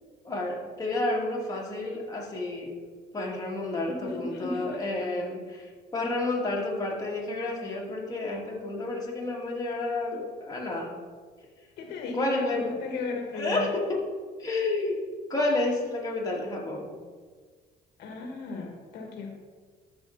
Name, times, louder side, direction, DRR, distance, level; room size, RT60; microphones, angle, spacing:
voice 1, 0.2-2.7 3.1-11.0 12.1-12.7 13.3-14.1 14.4-15.0 15.3-17.0, left 2 dB, 20° left, -3 dB, 2.1 m, -30 dB
voice 2, 3.9-4.8 11.8-13.7 18.0-19.3, left 3 dB, 75° left, 2 dB, 1.4 m, -35 dB
13.0 x 4.8 x 3.9 m, 1.5 s
cardioid pair, 110°, 17 cm